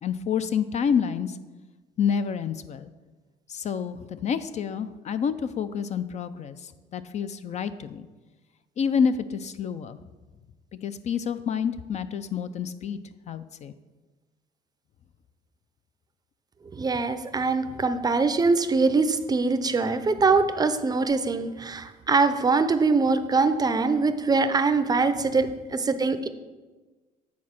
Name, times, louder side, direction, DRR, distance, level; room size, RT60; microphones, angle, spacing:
voice 1, 0.0-1.4 2.0-2.9 3.5-8.1 8.8-10.0 10.8-13.0 13.3-13.7, left 7 dB, 40° left, 12 dB, 0.4 m, -28 dB
voice 2, 16.8-26.3, right 4 dB, 25° right, 10 dB, 0.5 m, -23 dB
8.6 x 4.2 x 5.8 m, 1.3 s
cardioid pair, 110°, 17 cm